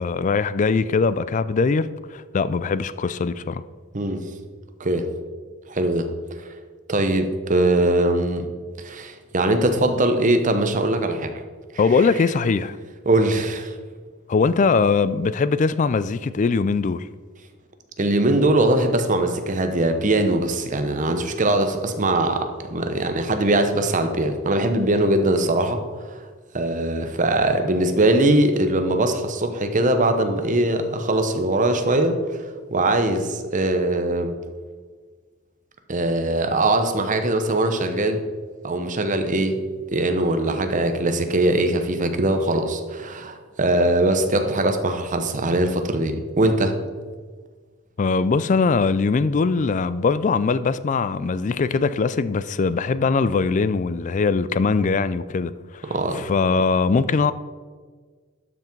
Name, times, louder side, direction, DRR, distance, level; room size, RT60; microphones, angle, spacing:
voice 1, 0.0-3.6 11.8-12.8 14.3-17.1 48.0-55.8 56.1-57.3, left 4 dB, 35° left, 0.3 m, -21 dB
voice 2, 5.7-6.1 6.9-8.5 8.8-11.3 13.1-13.7 18.0-25.8 26.5-32.2 32.7-34.3 35.9-38.2 38.6-39.6 39.9-46.8 55.8-56.2, right 1 dB, 35° right, 0.9 m, -21 dB
12.0 x 5.9 x 4.5 m
head